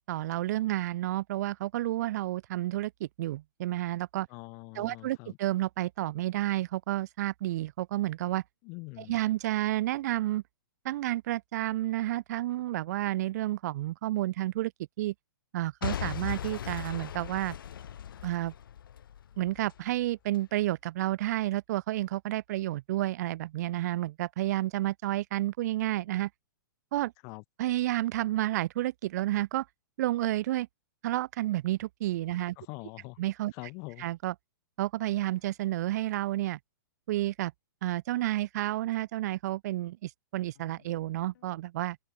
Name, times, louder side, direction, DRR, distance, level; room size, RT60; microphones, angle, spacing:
voice 1, 0.1-4.3 4.7-8.4 9.1-10.4 10.8-14.7 15.0-15.1 15.5-17.6 18.2-18.5 19.4-26.3 26.9-27.1 27.6-29.7 30.0-30.7 31.0-32.6 33.2-33.5 34.0-34.3 34.8-36.6 37.1-37.5 37.8-42.0, right 15 dB, 50° right, 0.7 m, -30 dB
voice 2, 4.3-5.4 8.6-9.1 27.2-27.4 32.3-33.2 33.5-34.0, left 32 dB, 30° left, 0.4 m, -44 dB
Boom / Shatter / Crushing, 15.8-19.8 20.3-20.4, left 9 dB, 85° left, 0.5 m, -38 dB
sound 1, 35.2-36.1 38.4-38.5 38.9-39.0 39.5-39.6 40.5-41.6, left 11 dB, 65° left, 7.1 m, -65 dB
hypercardioid pair, 145°, 11 cm